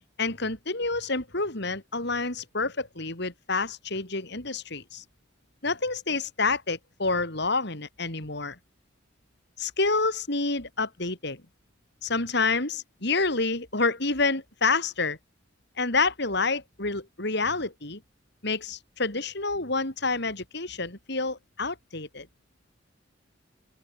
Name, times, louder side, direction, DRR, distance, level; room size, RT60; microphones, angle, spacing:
voice 1, 0.2-5.0 5.6-8.6 9.6-11.4 12.0-15.2 15.8-18.0 18.4-22.3, left 3 dB, 60° left, 5.1 m, -28 dB
open air
head